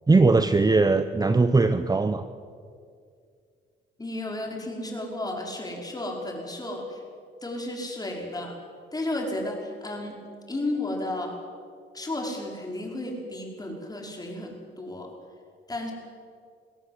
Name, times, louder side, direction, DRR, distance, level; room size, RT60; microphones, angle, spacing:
voice 1, 0.1-2.2, right 3 dB, 20° right, 11 dB, 0.8 m, -20 dB
voice 2, 4.0-7.0 7.4-8.6 8.9-10.2 10.5-11.4 11.9-15.1 15.7-15.9, left 1 dB, 20° left, 0 dB, 5.4 m, -33 dB
22.5 x 16.5 x 8.0 m, 2.2 s
cardioid pair, 90°, 20 cm